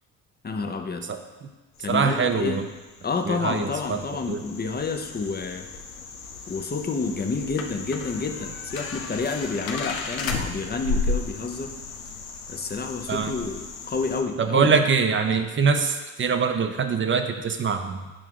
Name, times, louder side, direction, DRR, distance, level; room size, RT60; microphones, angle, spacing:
voice 1, 0.4-1.1 1.8-2.6 3.0-5.7 6.5-11.7 12.5-14.7, left 4 dB, 25° left, 5 dB, 0.8 m, -29 dB
voice 2, 1.0-1.5 1.9-2.7 3.2-4.4 13.1-13.3 14.4-18.1, right 5 dB, 30° right, 7 dB, 0.8 m, -24 dB
sound 1, 1.8-14.2, left 4 dB, 90° left, 0.6 m, -34 dB
8.8 x 5.8 x 3.0 m, 1.2 s
hypercardioid pair, 55°, 40 cm